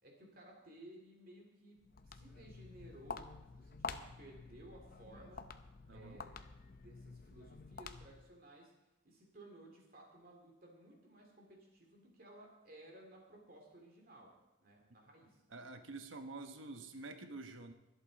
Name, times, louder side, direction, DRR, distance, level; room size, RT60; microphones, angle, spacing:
voice 1, 0.0-5.5 5.9-6.3 6.7-8.7 9.0-14.3 14.6-15.4, right 1 dB, 45° right, 0 dB, 2.7 m, -58 dB
Walk footsteps, 1.8-8.3, left 4 dB, 45° left, 0.6 m, -49 dB
voice 2, 5.9-6.2 15.5-17.7, right 3 dB, 75° right, 7 dB, 1.1 m, -48 dB
22.5 x 8.2 x 4.0 m, 0.98 s
head